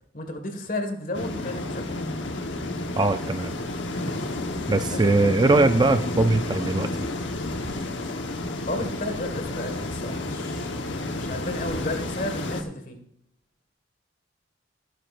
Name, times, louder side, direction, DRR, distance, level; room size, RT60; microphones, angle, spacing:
voice 1, 0.1-1.9 4.2-4.4 4.9-5.0 8.6-10.8 11.1-13.0, left 1 dB, 45° left, 5 dB, 1.7 m, -32 dB
sound 1, 1.1-12.6, left 2 dB, 70° left, 1.1 m, -31 dB
voice 2, 3.0-3.5 4.7-6.9, right 2 dB, 20° right, 9 dB, 0.4 m, -21 dB
16.0 x 11.0 x 2.5 m, 0.74 s
head